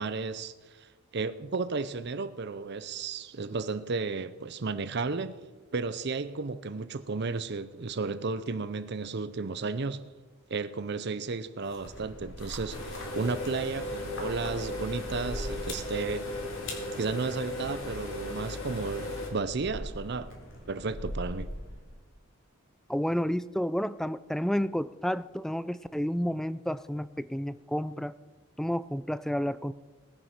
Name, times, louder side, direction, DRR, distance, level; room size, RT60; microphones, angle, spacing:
voice 1, 0.0-5.4 5.7-10.1 10.5-12.8 13.1-16.3 17.0-20.3 20.7-21.5, right 4 dB, 55° right, 0.6 m, -33 dB
sound 1, 11.6-22.0, equal, 60° left, 4.0 m, -43 dB
sound 2, 12.7-19.3, left 1 dB, 80° left, 3.8 m, -36 dB
voice 2, 22.9-28.1 28.6-29.7, equal, ahead, 0.4 m, -30 dB
20.0 x 9.5 x 5.8 m
head